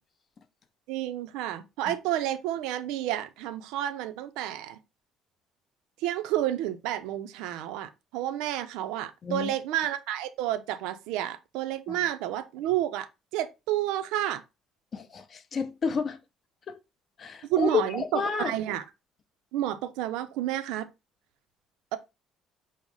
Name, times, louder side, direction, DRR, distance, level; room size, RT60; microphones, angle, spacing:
voice 1, 0.9-4.8 6.0-14.4 17.5-18.8 19.5-20.9, right 12 dB, 90° right, 0.5 m, -30 dB
voice 2, 14.9-16.2 16.7-16.8 17.2-18.5, left 6 dB, 40° left, 0.7 m, -30 dB
5.5 x 2.0 x 4.7 m
cardioid pair, 115°, 0 cm